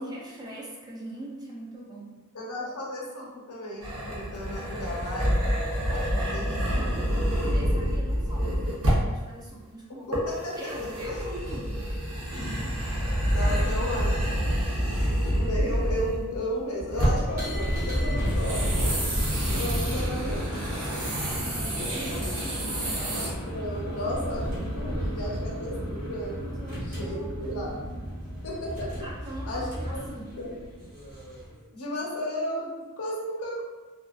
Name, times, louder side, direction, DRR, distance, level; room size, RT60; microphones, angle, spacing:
voice 1, 0.0-2.2 6.7-10.2 10.6-12.0 13.5-13.8 21.1-23.0 24.9-25.4 26.4-28.2 29.0-30.3, right 1 dB, 20° right, -4 dB, 0.4 m, -42 dB
voice 2, 2.3-5.3 5.9-6.8 10.1-10.5 11.1-11.2 12.3-12.7 13.3-14.2 15.2-18.9 19.5-20.6 23.3-26.4 26.7-27.8 28.4-28.9 29.5-30.6 31.7-33.6, equal, 75° left, -4 dB, 0.8 m, -34 dB
sound 1, 3.8-9.2 10.1-16.4 16.8-17.4 18.2-23.3, equal, 80° right, 0.8 m, -28 dB
sound 2, 17.1-31.6, equal, 40° right, 1.0 m, -32 dB
2.4 x 2.3 x 2.3 m, 1.2 s
head